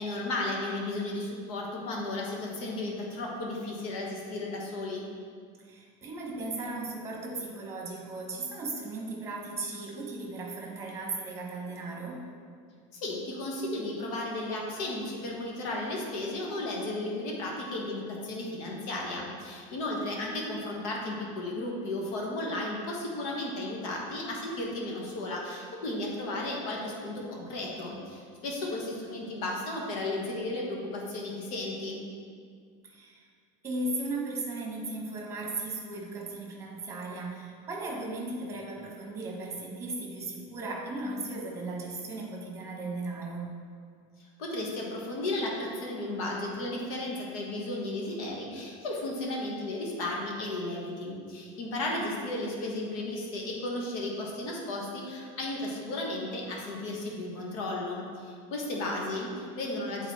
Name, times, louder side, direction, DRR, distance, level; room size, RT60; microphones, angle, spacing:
voice 1, 0.0-5.0 12.9-32.0 44.4-60.1, left 2 dB, 70° left, -2 dB, 1.4 m, -34 dB
voice 2, 5.6-12.3 32.8-33.2 33.6-43.5, right 2 dB, 15° right, -1 dB, 1.2 m, -36 dB
8.0 x 4.0 x 4.3 m, 2.1 s
cardioid pair, 160°, 18 cm